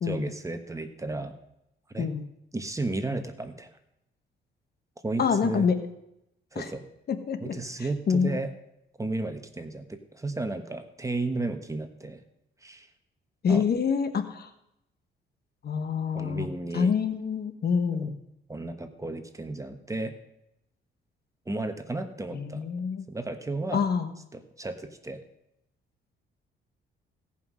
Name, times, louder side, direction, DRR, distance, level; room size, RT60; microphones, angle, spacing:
voice 1, 0.0-1.3 1.9-2.1 2.5-3.7 5.0-5.7 6.5-6.8 7.4-8.5 9.0-12.2 12.6-12.9 13.5-13.6 16.1-16.9 17.9-18.1 18.5-20.1 21.5-22.6 23.1-23.8 24.3-25.2, right 2 dB, 15° right, 7 dB, 1.3 m, -33 dB
voice 2, 5.2-5.8 6.5-6.7 7.1-7.6 8.1-8.4 13.4-14.5 15.6-16.5 16.7-18.1 22.3-23.0 23.7-24.1, left 6 dB, 55° left, 9 dB, 1.3 m, -26 dB
17.0 x 5.7 x 6.3 m, 0.81 s
cardioid pair, 90°, 20 cm